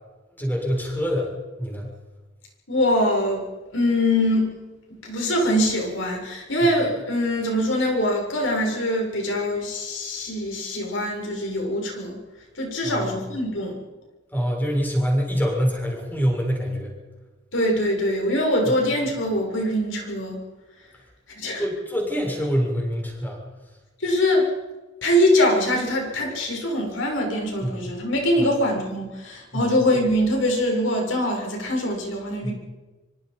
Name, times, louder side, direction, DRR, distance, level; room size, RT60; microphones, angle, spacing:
voice 1, 0.4-1.3 1.6-1.9 6.6-6.7 12.8-13.2 14.3-17.0 21.6-23.4 27.6-27.7 28.4-28.5 29.5-29.7 32.4-32.5, equal, 10° left, -1 dB, 7.3 m, -25 dB
voice 2, 2.7-3.4 3.7-4.5 4.9-12.2 12.6-13.8 17.5-20.4 21.3-21.6 24.0-24.5 25.0-32.5, left 1 dB, 70° left, 0 dB, 7.2 m, -23 dB
25.5 x 25.0 x 5.5 m, 1.2 s
head